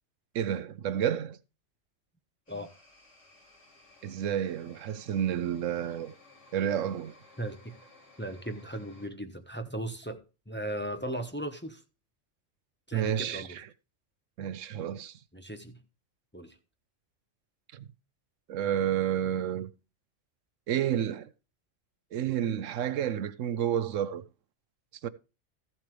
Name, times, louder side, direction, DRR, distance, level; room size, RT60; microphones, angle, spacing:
voice 1, 0.3-1.4 4.0-6.1 6.5-7.1 12.9-13.5 14.4-15.1 17.7-17.9 18.5-19.7 20.7-21.3 22.1-24.2 25.0-25.1, right 10 dB, 85° right, 1.1 m, -30 dB
sound 1, 2.5-9.1, left 2 dB, 70° left, 3.4 m, -58 dB
voice 2, 7.4-7.8 8.2-11.8 12.9-13.6 15.3-15.8 16.3-16.6, right 1 dB, 10° left, 1.0 m, -37 dB
14.5 x 7.6 x 3.3 m
omnidirectional pair, 1.3 m